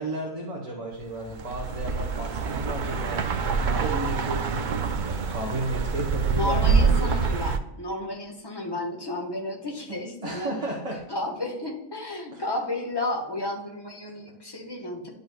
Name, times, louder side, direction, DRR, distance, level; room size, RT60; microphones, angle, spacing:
voice 1, 0.0-7.1 9.9-11.0 12.3-12.4, right 1 dB, 30° right, -3 dB, 1.1 m, -33 dB
sound 1, 1.3-7.6, right 5 dB, 60° right, 0.5 m, -26 dB
voice 2, 6.3-10.5 11.1-15.1, left 1 dB, 20° left, -1 dB, 1.3 m, -32 dB
11.0 x 5.4 x 2.3 m, 1.0 s
omnidirectional pair, 1.4 m